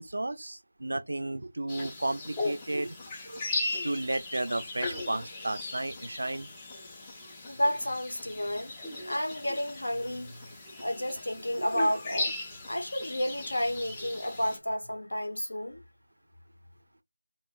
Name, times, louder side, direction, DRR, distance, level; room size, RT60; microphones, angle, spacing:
voice 1, 0.0-3.0 3.2-3.5 3.8-6.5 11.6-11.7, right 2 dB, 60° right, 0.3 m, -33 dB
sound 1, 1.7-14.6, left 2 dB, 10° left, 0.4 m, -38 dB
voice 2, 7.5-8.7 9.1-10.4 10.8-12.3 12.7-15.8, equal, 75° left, 0.8 m, -31 dB
2.2 x 2.1 x 3.5 m
figure-of-eight pair, 170°, 0 cm